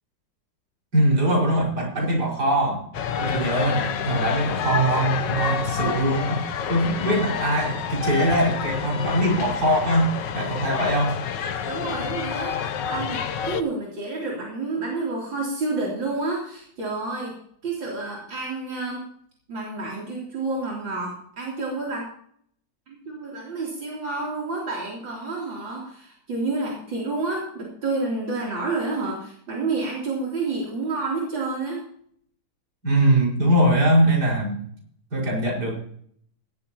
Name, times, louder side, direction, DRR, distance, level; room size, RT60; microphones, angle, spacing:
voice 1, 0.9-2.8 3.2-11.2 32.8-34.6 35.1-35.8, right 1 dB, 55° right, -2 dB, 5.8 m, -22 dB
sound 1, 2.9-13.6, left 8 dB, 70° left, 1.6 m, -28 dB
voice 2, 11.7-17.3 17.6-19.1 19.5-22.1 22.9-31.9, right 3 dB, 80° right, -4 dB, 4.0 m, -29 dB
17.0 x 13.5 x 2.9 m, 0.62 s
omnidirectional pair, 2.0 m